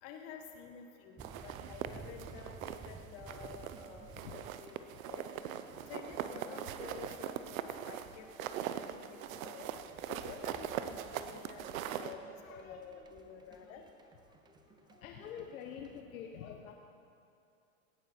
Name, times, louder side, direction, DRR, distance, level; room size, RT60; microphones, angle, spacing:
voice 1, 0.0-5.3 5.9-8.5 8.9-9.7 10.1-13.8, left 6 dB, 55° left, 4 dB, 1.7 m, -50 dB
sound 1, 1.2-16.0, right 4 dB, 10° right, 0.4 m, -56 dB
sound 2, 1.2-2.9 3.3-3.9 4.2-12.1, right 10 dB, 70° right, 0.8 m, -41 dB
voice 2, 12.4-12.8 15.0-16.7, left 8 dB, 80° left, 3 dB, 1.1 m, -46 dB
17.5 x 9.0 x 4.5 m, 2.5 s
hypercardioid pair, 120°, 42 cm